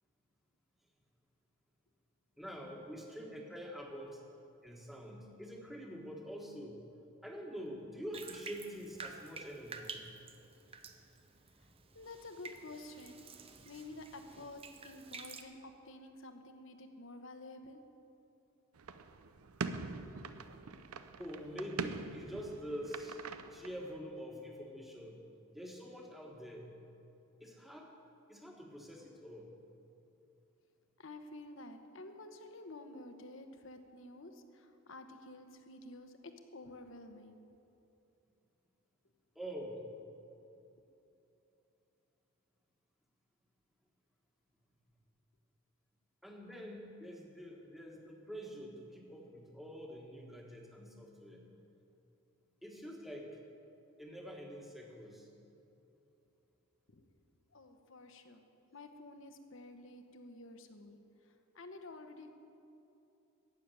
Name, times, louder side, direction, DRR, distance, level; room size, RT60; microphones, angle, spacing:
voice 1, 2.4-4.2 4.6-6.8 7.2-10.1 21.2-23.2 23.5-25.2 25.5-26.7 27.4-27.9 28.3-29.5 39.3-39.9 46.2-51.5 52.6-53.3 54.0-55.3, equal, ahead, -1 dB, 1.4 m, -46 dB
Bathtub (filling or washing), 8.1-15.4, right 4 dB, 25° right, 0.7 m, -50 dB
voice 2, 11.9-13.2 13.6-17.8 31.0-37.4 56.9-57.0 57.5-58.4 58.7-61.0 61.2-62.3, left 2 dB, 60° left, 6 dB, 1.0 m, -51 dB
sound 1, 18.8-24.0, right 4 dB, 85° right, 0.6 m, -43 dB
15.0 x 7.0 x 9.2 m, 2.9 s
head